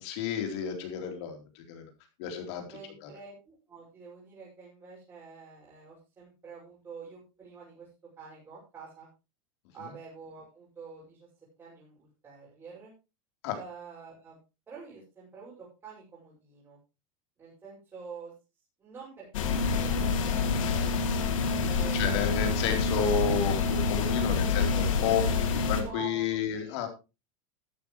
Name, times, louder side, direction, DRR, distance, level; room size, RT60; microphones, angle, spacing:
voice 1, 0.0-1.9 2.2-3.1 13.4-13.5 21.9-25.2 25.6-26.9, left 6 dB, 60° left, 4 dB, 3.9 m, -31 dB
voice 2, 2.7-7.9 8.2-9.1 9.7-11.3 11.6-12.9 13.5-14.4 14.7-16.8 17.4-18.3 18.8-20.9 21.6-22.5 24.2-25.5 25.8-26.8, right 5 dB, 20° right, -8 dB, 6.4 m, -47 dB
sound 1, 19.3-25.8, left 5 dB, 85° left, 2.9 m, -27 dB
13.5 x 12.0 x 3.2 m, 0.29 s
supercardioid pair, 160°, 16 cm